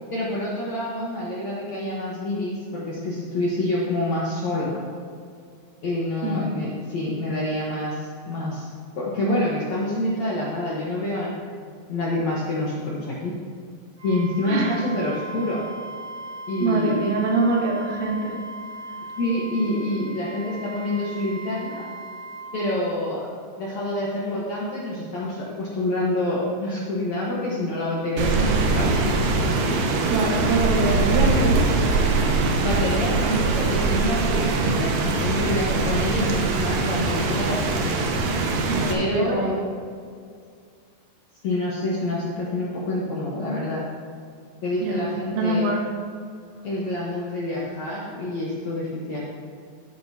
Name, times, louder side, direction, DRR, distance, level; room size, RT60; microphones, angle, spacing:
voice 1, 0.1-4.8 5.8-8.7 8.9-11.3 11.6-13.3 14.0-15.6 16.5-17.1 19.2-21.8 22.5-23.2 23.6-28.9 32.6-38.1 38.9-39.6 41.4-43.8 44.6-45.7 46.6-49.2, left 1 dB, 65° left, -6 dB, 1.7 m, -27 dB
Wind instrument woodwind instrument, 14.0-22.5, right 2 dB, 40° right, 3.7 m, -38 dB
voice 2, 14.5-14.8 16.6-18.4 30.1-31.7 38.7-39.5 44.8-45.1 45.3-45.9, right 2 dB, 90° right, -2 dB, 3.9 m, -24 dB
Rain, 28.2-38.9, right 3 dB, 70° right, 2.2 m, -22 dB
14.5 x 8.1 x 2.8 m, 2.2 s
omnidirectional pair, 5.0 m